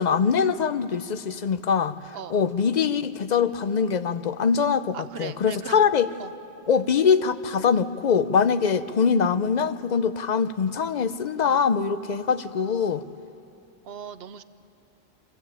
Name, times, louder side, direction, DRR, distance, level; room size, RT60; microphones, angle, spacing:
voice 1, 0.0-6.1 6.7-13.0, left 6 dB, 50° left, 0.6 m, -23 dB
voice 2, 4.9-5.8 6.2-6.3 13.8-14.4, right 8 dB, 70° right, 0.9 m, -38 dB
24.0 x 15.5 x 8.7 m
omnidirectional pair, 1.1 m